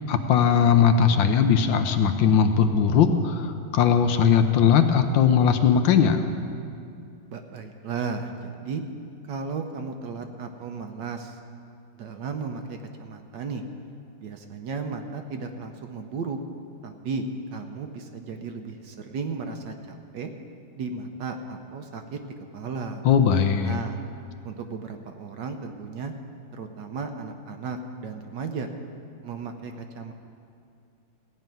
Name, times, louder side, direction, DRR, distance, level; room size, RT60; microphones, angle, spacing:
voice 1, 0.1-6.2 23.0-23.8, left 7 dB, 75° left, 8 dB, 1.3 m, -19 dB
voice 2, 7.3-8.8 9.3-11.4 11.9-13.6 14.2-16.4 16.8-20.3 20.7-23.0 23.6-24.0 24.4-26.1 26.5-28.7 29.2-30.1, right 4 dB, 65° right, 5 dB, 1.3 m, -34 dB
16.0 x 5.6 x 9.1 m, 2.5 s
omnidirectional pair, 2.2 m